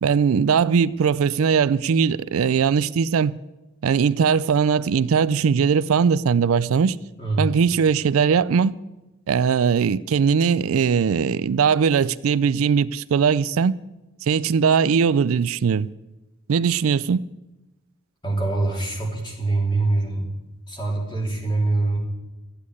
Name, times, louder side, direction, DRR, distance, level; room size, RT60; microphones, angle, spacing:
voice 1, 0.0-3.3 3.8-7.0 7.4-8.7 9.3-13.8 14.2-15.9 16.5-17.3, right 6 dB, 80° right, 0.4 m, -20 dB
voice 2, 7.2-7.5 18.2-20.3 20.7-22.0, right 2 dB, 20° left, 3.2 m, -24 dB
13.0 x 8.5 x 9.8 m
head